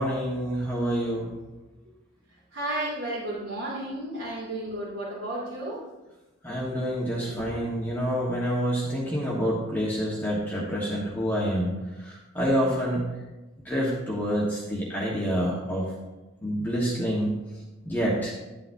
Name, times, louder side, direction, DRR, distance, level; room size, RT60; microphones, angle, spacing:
voice 1, 0.0-1.4 6.4-13.1 13.6-15.9 16.4-17.4 17.8-18.3, equal, 10° left, -6 dB, 1.3 m, -27 dB
voice 2, 2.5-5.8 7.3-7.9, right 1 dB, 70° right, -9 dB, 2.6 m, -33 dB
11.5 x 8.7 x 2.7 m, 1.1 s
head